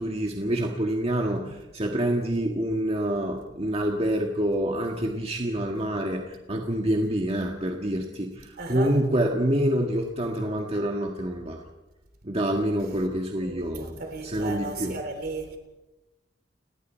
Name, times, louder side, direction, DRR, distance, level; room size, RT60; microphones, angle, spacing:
voice 1, 0.0-11.6 12.2-15.0, right 1 dB, 35° right, 1.8 m, -27 dB
voice 2, 8.6-8.9 13.4-15.6, right 3 dB, 55° right, 3.3 m, -35 dB
29.5 x 19.5 x 4.5 m
head